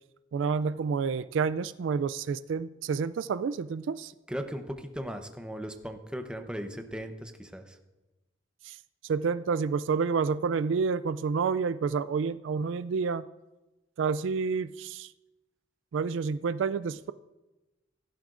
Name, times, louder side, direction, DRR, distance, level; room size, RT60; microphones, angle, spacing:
voice 1, 0.3-4.1 8.6-8.8 9.0-13.3 14.0-15.1 15.9-17.1, right 5 dB, 75° right, 15 dB, 0.3 m, -29 dB
voice 2, 4.3-7.8, equal, 5° right, 5 dB, 0.8 m, -37 dB
16.5 x 11.5 x 2.5 m, 1.1 s
head